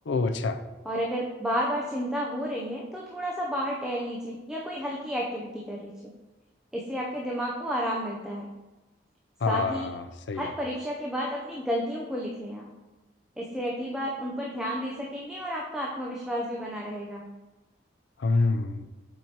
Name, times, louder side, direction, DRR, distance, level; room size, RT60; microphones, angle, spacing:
voice 1, 0.1-0.6 9.4-10.5 18.2-18.9, left 3 dB, 75° left, 9 dB, 0.4 m, -27 dB
voice 2, 0.8-5.9 6.7-8.5 9.5-9.9 10.3-12.7 13.4-17.3, equal, 5° right, -3 dB, 0.5 m, -31 dB
7.4 x 4.6 x 2.8 m, 1.1 s
head